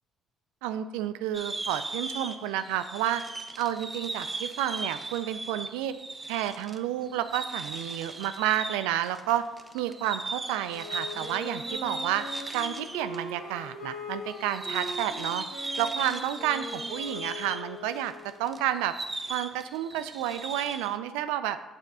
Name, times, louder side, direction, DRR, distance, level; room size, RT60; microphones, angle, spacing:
voice 1, 0.6-3.2 3.6-5.9 6.3-9.4 9.7-12.2 12.5-15.4 15.8-18.1 18.4-18.9 19.3-21.6, right 12 dB, 80° right, 11 dB, 0.3 m, -30 dB
sound 1, 1.3-13.2 13.5-13.6 14.3-21.0, right 3 dB, 25° right, 0.6 m, -38 dB
Wind instrument woodwind instrument, 10.7-18.5, left 3 dB, 60° left, 1.4 m, -41 dB
6.6 x 3.5 x 5.5 m, 1.1 s
hypercardioid pair, 60°, 0 cm